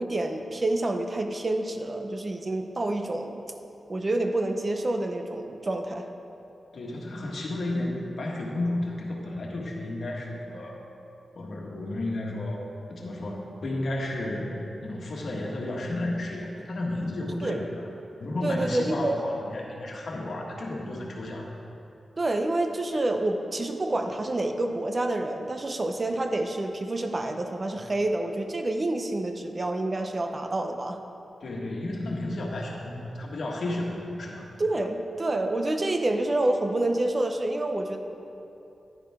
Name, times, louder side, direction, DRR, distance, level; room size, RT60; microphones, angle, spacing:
voice 1, 0.0-3.4 3.9-6.1 17.4-17.6 18.4-19.2 22.2-31.0 34.6-38.0, right 2 dB, 35° right, 5 dB, 0.7 m, -28 dB
voice 2, 6.7-10.8 11.3-12.6 12.9-17.7 18.2-21.5 31.4-34.5, left 1 dB, 65° left, -1 dB, 1.5 m, -32 dB
10.5 x 10.0 x 3.6 m, 2.9 s
wide cardioid pair, 100°, 0 cm